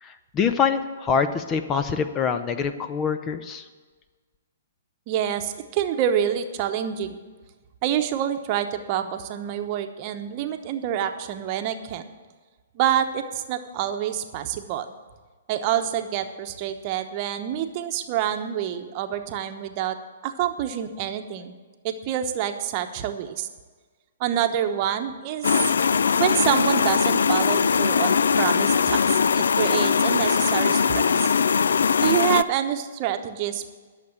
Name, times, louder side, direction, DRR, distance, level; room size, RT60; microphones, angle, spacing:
voice 1, 0.0-3.6, left 6 dB, 25° left, 10 dB, 0.7 m, -25 dB
voice 2, 5.1-7.2 7.8-12.0 12.7-14.9 15.5-20.0 20.2-21.5 21.8-23.5 24.2-25.7 26.2-31.3 32.0-33.7, right 10 dB, 40° right, 7 dB, 1.0 m, -27 dB
sound 1, 25.4-32.4, left 6 dB, 75° left, 0.3 m, -21 dB
11.5 x 6.8 x 8.6 m, 1.4 s
hypercardioid pair, 130°, 0 cm